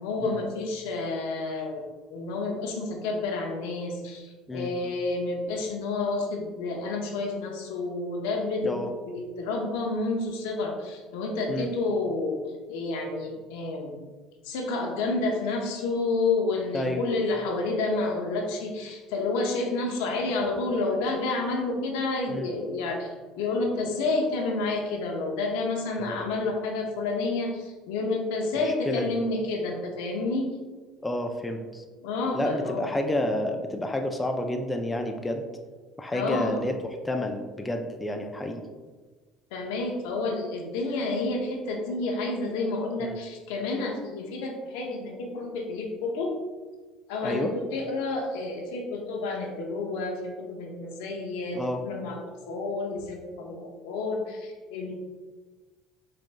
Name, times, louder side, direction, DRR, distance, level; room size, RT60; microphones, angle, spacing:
voice 1, 0.0-1.8 2.1-8.8 9.1-12.4 12.7-14.0 14.4-30.5 32.0-32.9 36.1-36.6 39.5-46.3 47.1-52.2 52.5-54.9, left 3 dB, 85° left, 1 dB, 0.6 m, -29 dB
voice 2, 28.6-29.2 31.0-31.8 32.3-35.5 36.0-36.7 37.0-38.6 43.0-43.2 47.2-47.5 51.5-51.8, left 1 dB, 15° left, 4 dB, 0.4 m, -30 dB
4.8 x 2.6 x 2.2 m, 1.3 s
supercardioid pair, 100°, 0 cm